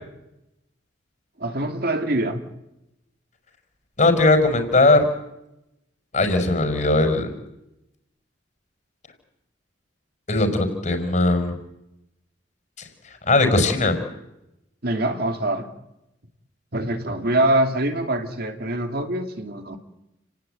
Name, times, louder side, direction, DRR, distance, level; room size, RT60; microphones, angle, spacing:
voice 1, 1.4-2.4 14.8-15.7 16.7-19.8, right 1 dB, 55° right, 6 dB, 2.5 m, -24 dB
voice 2, 4.0-5.1 6.1-7.3 10.3-11.6 13.3-14.0, left 2 dB, 40° left, 7 dB, 5.1 m, -19 dB
29.5 x 18.5 x 9.1 m, 0.89 s
head